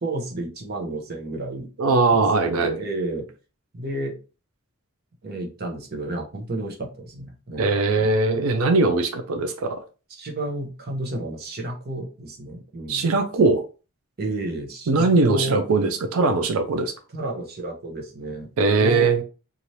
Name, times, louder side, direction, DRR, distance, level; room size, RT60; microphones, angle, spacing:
voice 1, 0.0-2.2 2.5-3.3 3.7-4.1 5.2-8.4 10.1-13.1 14.2-15.6 17.1-18.5 18.8-19.2, right 1 dB, 45° right, 0.8 m, -32 dB
voice 2, 1.8-2.8 7.6-9.8 12.9-13.6 14.9-16.9 18.6-19.2, right 3 dB, 75° right, 0.5 m, -20 dB
2.7 x 2.5 x 3.1 m
head